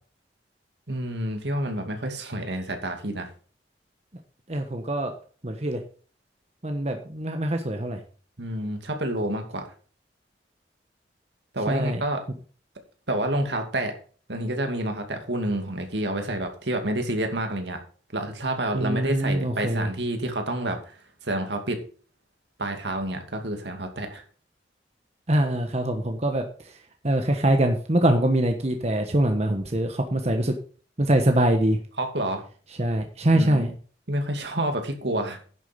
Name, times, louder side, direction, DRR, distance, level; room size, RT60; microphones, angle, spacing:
voice 1, 0.9-3.3 8.4-9.7 11.5-12.2 13.1-13.9 14.3-17.8 18.1-20.9 21.2-21.8 22.6-24.2 32.0-32.4 33.4-33.7 34.1-35.4, right 1 dB, 75° right, 5 dB, 2.5 m, -28 dB
voice 2, 4.5-5.1 5.4-5.8 6.6-8.0 11.7-12.0 18.7-19.9 25.3-26.4 27.0-30.5 31.0-31.8 32.8-33.7, right 1 dB, 35° right, 5 dB, 1.2 m, -23 dB
10.5 x 7.5 x 5.3 m, 0.41 s
head